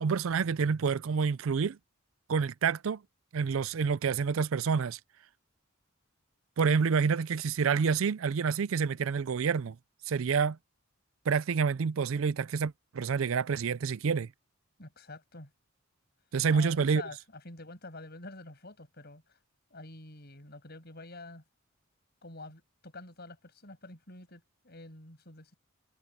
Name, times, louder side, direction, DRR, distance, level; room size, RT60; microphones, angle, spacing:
voice 1, 0.0-1.8 2.3-3.0 3.3-5.0 6.6-9.8 10.1-10.6 11.3-14.3 16.3-17.0, right 5 dB, 70° right, 0.4 m, -28 dB
voice 2, 14.8-15.5 16.5-19.4 19.7-21.4 22.2-25.5, left 2 dB, 50° left, 7.4 m, -47 dB
head